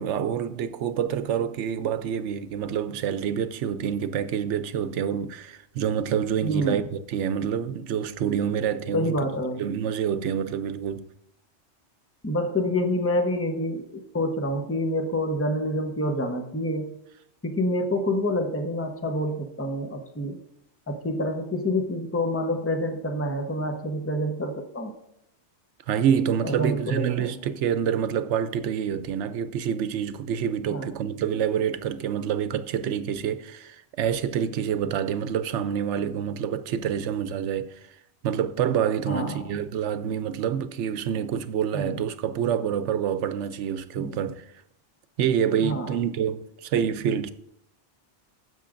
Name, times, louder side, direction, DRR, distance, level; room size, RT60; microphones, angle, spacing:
voice 1, 0.0-9.2 9.6-11.1 25.9-37.8 38.2-44.4 45.2-47.3, right 8 dB, 85° right, 0.9 m, -27 dB
voice 2, 6.4-6.9 8.9-9.6 12.2-16.9 17.4-20.4 20.9-24.9 26.4-27.3 30.7-30.9 39.1-39.6 41.7-42.0 44.0-44.2 45.6-45.9, left 1 dB, 15° left, 0.9 m, -27 dB
16.0 x 7.4 x 2.5 m
omnidirectional pair, 1.2 m